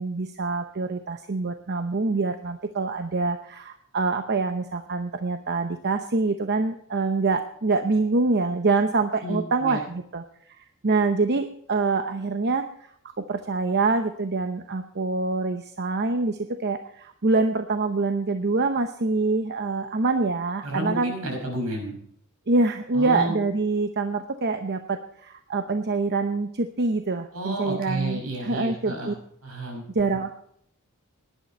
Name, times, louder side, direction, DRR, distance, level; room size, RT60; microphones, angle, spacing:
voice 1, 0.0-12.6 13.3-21.1 22.5-29.1 29.9-30.3, right 3 dB, 50° right, 7 dB, 0.8 m, -25 dB
voice 2, 9.2-9.8 20.6-22.0 22.9-23.4 27.3-29.1 29.4-29.8, right 1 dB, 75° right, 2 dB, 5.9 m, -31 dB
18.0 x 11.0 x 4.3 m, 0.69 s
head